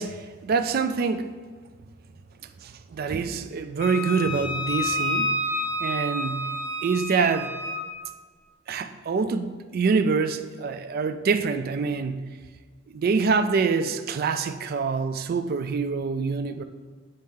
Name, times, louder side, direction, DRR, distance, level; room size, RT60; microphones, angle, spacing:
voice 1, 0.0-1.3 2.6-5.4 5.8-7.6 8.7-12.4 12.9-16.6, right 5 dB, 50° right, 0.3 m, -26 dB
Wind instrument woodwind instrument, 3.8-7.8, left 1 dB, 50° left, 1.3 m, -29 dB
7.6 x 4.4 x 3.7 m
head